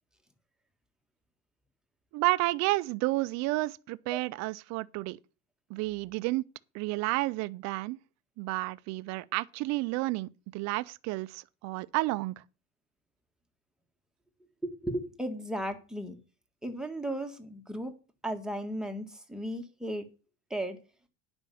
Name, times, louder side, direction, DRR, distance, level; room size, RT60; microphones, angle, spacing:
voice 1, 2.1-5.2 5.7-6.4 6.7-8.0 8.4-12.4, right 21 dB, 50° right, 0.6 m, -31 dB
voice 2, 14.6-16.2 16.6-17.9 18.2-20.1 20.5-20.8, right 1 dB, ahead, 1.7 m, -35 dB
9.8 x 5.3 x 7.7 m
supercardioid pair, 125°, 35 cm